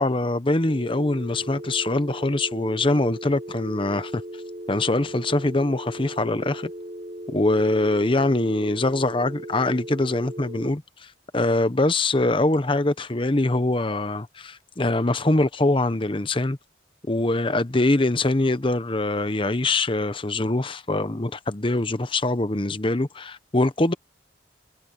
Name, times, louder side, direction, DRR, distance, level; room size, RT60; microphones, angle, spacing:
voice 1, 0.0-4.2 4.7-6.7 7.3-11.1 11.3-16.6 17.1-23.9, left 2 dB, 30° left, 0.9 m, -23 dB
sound 1, 0.7-10.7, equal, 35° right, 4.2 m, -38 dB
head